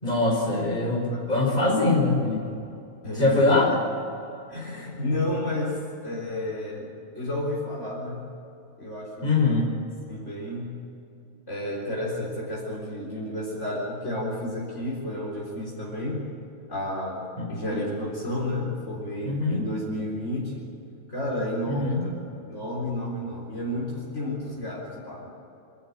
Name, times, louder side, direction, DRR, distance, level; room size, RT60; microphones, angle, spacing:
voice 1, 0.0-2.5 3.2-3.7 9.2-9.7 17.4-17.5 19.2-19.6 21.7-22.0, left 2 dB, 30° left, -2 dB, 5.4 m, -23 dB
voice 2, 3.0-3.8 4.5-6.9 7.1-8.2 8.8-9.6 10.1-10.7 11.5-16.3 16.7-20.7 21.1-25.3, left 1 dB, 55° left, -4 dB, 4.3 m, -31 dB
27.0 x 13.0 x 8.7 m, 2.7 s
omnidirectional pair, 1.5 m